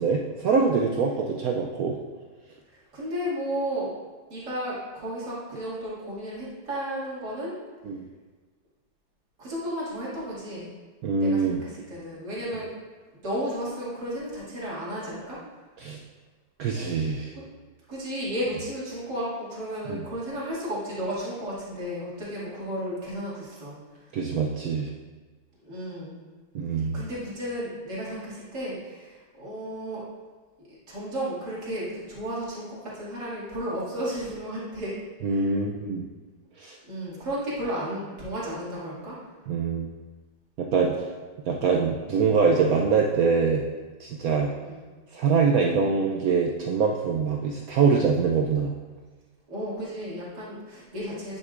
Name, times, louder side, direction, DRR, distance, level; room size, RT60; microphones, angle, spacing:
voice 1, 0.0-2.0 7.8-8.1 11.0-11.6 15.8-16.0 16.6-17.3 19.9-20.0 24.1-24.9 26.5-27.0 35.2-36.1 36.6-36.8 39.5-39.9 40.7-41.0 41.5-43.6 44.0-44.5 45.1-48.7, right 5 dB, 75° right, 0 dB, 0.8 m, -24 dB
voice 2, 2.7-3.9 4.3-7.5 9.4-10.7 11.2-12.7 13.2-15.4 17.3-17.4 17.9-23.8 24.1-24.2 25.6-26.2 26.9-30.0 30.7-34.9 35.2-35.5 36.9-39.2 44.6-44.8 49.5-51.4, equal, 55° right, -9 dB, 2.9 m, -33 dB
9.5 x 6.4 x 2.5 m, 1.4 s
omnidirectional pair, 2.1 m